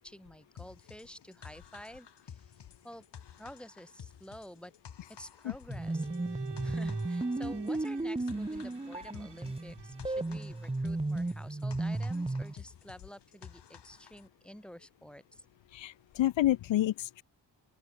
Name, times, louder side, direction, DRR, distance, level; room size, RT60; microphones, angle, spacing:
voice 1, 0.0-2.4 2.8-3.0 3.4-4.7 5.1-15.5, equal, ahead, 7.5 m, -50 dB
sound 1, 0.6-14.3, left 8 dB, 65° left, 5.8 m, -52 dB
sound 2, 5.7-12.5, right 2 dB, 15° right, 1.8 m, -34 dB
Bowed string instrument, 5.8-10.3, right 9 dB, 70° right, 2.2 m, -51 dB
voice 2, 15.7-17.2, left 14 dB, 90° left, 0.7 m, -29 dB
open air
wide cardioid pair, 130°, 43 cm